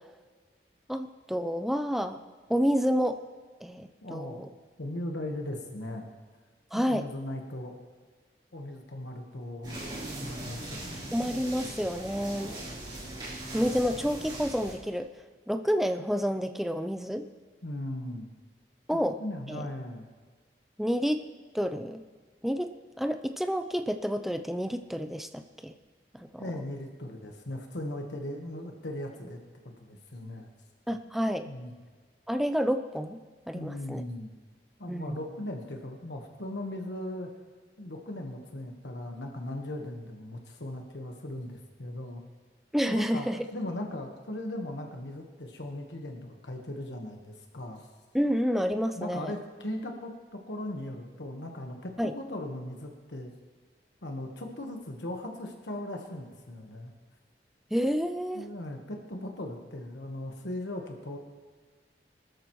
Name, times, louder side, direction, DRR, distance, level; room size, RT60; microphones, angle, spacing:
voice 1, 0.9-2.2 2.5-3.2 3.6-4.5 6.7-7.1 11.1-12.5 13.5-15.1 15.5-17.3 18.9-19.2 19.5-19.7 20.8-21.2 21.5-22.0 22.4-25.7 26.2-26.4 30.9-31.5 32.3-33.2 33.5-34.0 34.9-35.2 42.7-43.4 48.1-49.3 52.0-52.1 57.7-58.5, equal, ahead, 7 dB, 0.5 m, -29 dB
voice 2, 4.0-4.4 4.8-6.1 6.7-7.8 8.5-9.8 10.2-11.1 17.6-18.3 18.9-20.1 26.4-30.5 31.4-31.7 33.5-34.3 34.8-37.3 37.8-42.2 42.9-47.9 48.9-53.3 54.0-56.9 58.3-61.2, left 1 dB, 90° left, 2 dB, 1.4 m, -38 dB
sound 1, 9.6-14.8, right 1 dB, 25° right, 3.8 m, -40 dB
23.0 x 13.0 x 3.1 m, 1.5 s
head